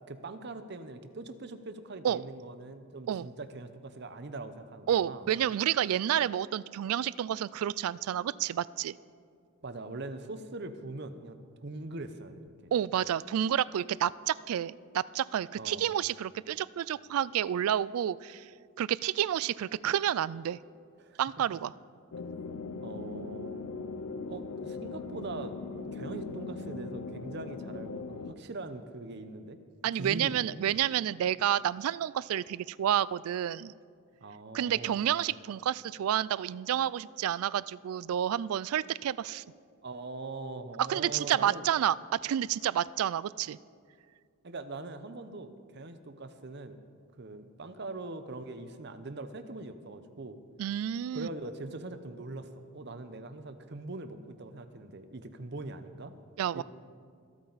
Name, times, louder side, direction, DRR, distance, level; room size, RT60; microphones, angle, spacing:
voice 1, 0.1-5.3 9.6-11.4 11.6-12.7 13.0-13.1 15.6-15.9 21.0-21.2 22.8-23.7 24.3-25.6 25.8-29.6 30.0-30.5 34.2-35.0 39.8-41.7 44.4-46.8 47.2-50.4 51.1-56.1 56.5-56.6, right 2 dB, 50° right, 10 dB, 0.7 m, -42 dB
voice 2, 4.9-9.0 12.7-18.5 18.8-20.6 21.2-21.7 29.8-33.7 34.5-39.4 40.9-43.6 50.6-51.3 56.4-56.6, right 10 dB, 80° right, 21 dB, 0.3 m, -30 dB
sound 1, 22.1-28.3, left 4 dB, 85° left, 0.6 m, -39 dB
25.0 x 8.6 x 4.0 m, 2.2 s
head